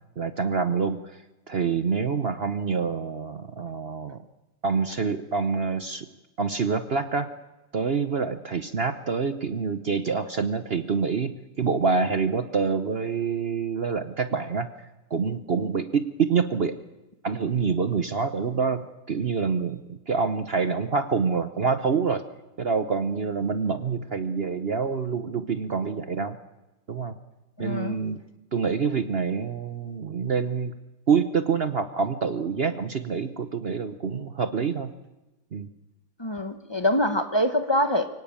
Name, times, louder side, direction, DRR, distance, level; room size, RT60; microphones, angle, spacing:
voice 1, 0.2-1.2 1.5-4.2 4.6-6.1 6.4-7.3 7.7-11.3 11.6-14.7 15.1-16.7 17.2-18.8 19.1-22.2 22.6-26.4 26.9-27.1 27.6-28.2 28.5-30.7 31.1-34.9 35.5-35.7, right 5 dB, 65° right, 9 dB, 0.6 m, -26 dB
voice 2, 27.6-28.0 36.2-38.1, left 1 dB, 20° left, 7 dB, 0.8 m, -24 dB
24.0 x 17.5 x 8.8 m, 1.0 s
omnidirectional pair, 2.3 m